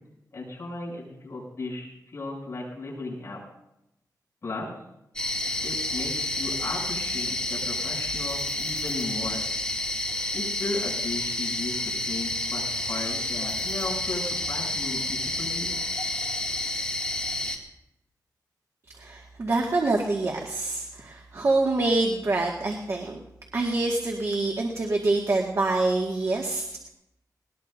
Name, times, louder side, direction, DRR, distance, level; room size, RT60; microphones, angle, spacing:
voice 1, 0.3-3.4 4.4-4.7 5.6-9.4 10.3-15.7, left 2 dB, 45° left, -3 dB, 8.0 m, -35 dB
sound 1, 5.2-17.6, left 2 dB, 15° left, 2.4 m, -29 dB
voice 2, 19.0-23.2 23.5-26.9, right 2 dB, 45° right, 0 dB, 1.9 m, -26 dB
21.0 x 20.0 x 2.7 m, 0.84 s
wide cardioid pair, 135°, 7 cm